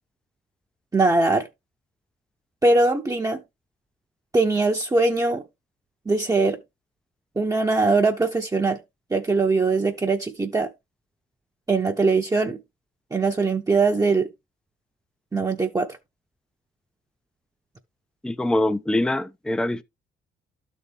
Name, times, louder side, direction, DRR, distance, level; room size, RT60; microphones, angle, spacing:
voice 1, 0.9-1.5 2.6-3.4 4.3-5.4 6.1-6.6 7.4-8.8 9.1-10.7 11.7-12.6 13.1-14.3 15.3-16.0, right 3 dB, 15° right, 0.9 m, -21 dB
voice 2, 18.2-19.8, left 1 dB, 5° left, 0.5 m, -24 dB
12.0 x 4.2 x 3.4 m
cardioid pair, 90°, 20 cm